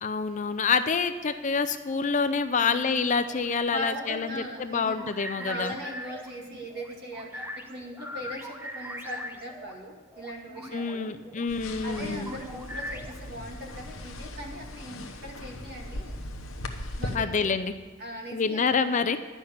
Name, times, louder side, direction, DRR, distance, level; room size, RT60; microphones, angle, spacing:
voice 1, 0.0-5.7 10.7-12.4 17.1-17.7 18.3-19.2, left 5 dB, 35° left, 10 dB, 0.5 m, -27 dB
voice 2, 2.5-2.9 3.7-5.0 5.4-11.1 11.8-16.2 16.8-17.5 18.0-18.7, equal, 50° right, 0 dB, 2.2 m, -39 dB
sound 1, 3.0-9.8 10.1-13.3, left 1 dB, 10° right, 0.9 m, -42 dB
sound 2, 11.5-17.2, left 1 dB, 75° left, 1.0 m, -38 dB
11.5 x 5.8 x 8.6 m, 1.4 s
head